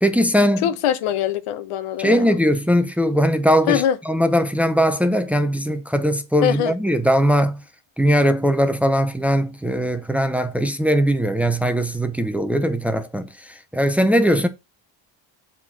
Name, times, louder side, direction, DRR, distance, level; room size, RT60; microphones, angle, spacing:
voice 1, 0.0-0.7 2.0-7.6 8.0-13.3 13.7-14.5, equal, 5° right, 0.6 m, -20 dB
voice 2, 0.6-2.4 3.7-4.0 6.4-6.7, left 10 dB, 85° left, 1.1 m, -22 dB
7.4 x 4.2 x 5.7 m
cardioid pair, 145°, 49 cm